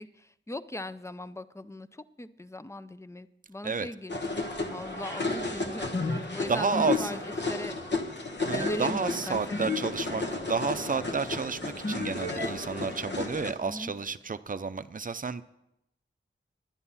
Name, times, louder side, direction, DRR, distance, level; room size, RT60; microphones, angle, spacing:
voice 1, 0.0-4.5 4.7-7.7 8.5-9.8 13.6-13.9, left 1 dB, 15° left, 13 dB, 0.5 m, -40 dB
sound 1, 4.1-13.5, left 3 dB, 60° left, 1.3 m, -32 dB
voice 2, 6.5-7.1 8.4-15.4, right 5 dB, 40° right, 12 dB, 0.5 m, -31 dB
10.5 x 10.0 x 5.7 m, 0.85 s
wide cardioid pair, 60°, 21 cm